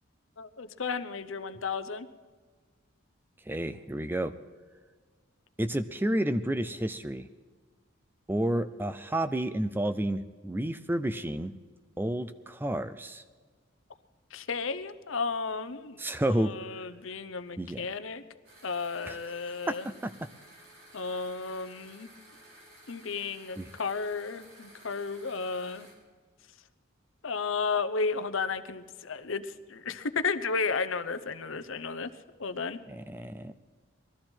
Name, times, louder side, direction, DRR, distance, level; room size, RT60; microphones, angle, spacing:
voice 1, 0.4-2.1 14.3-16.0 16.3-18.2 18.6-19.9 20.9-22.1 22.9-25.9 27.2-32.1 32.4-32.8, left 4 dB, 75° left, 12 dB, 0.8 m, -33 dB
voice 2, 3.5-4.3 5.6-7.3 8.3-11.5 12.0-13.2 16.0-16.5 17.6-17.8 19.1-19.2 19.7-19.8 20.0-20.1 23.6-23.7 32.9-33.5, right 1 dB, 10° right, 11 dB, 0.4 m, -30 dB
sound 1, 18.4-25.9, right 1 dB, 80° right, 4.8 m, -54 dB
20.5 x 13.5 x 4.5 m, 1.4 s
head